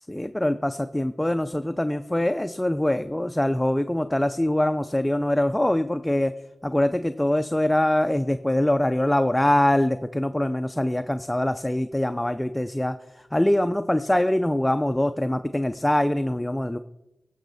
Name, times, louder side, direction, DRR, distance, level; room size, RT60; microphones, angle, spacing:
voice 1, 0.1-6.3 6.6-16.8, left 1 dB, 15° left, 9 dB, 0.4 m, -23 dB
15.0 x 5.6 x 4.0 m, 0.91 s
cardioid pair, 60°, 0 cm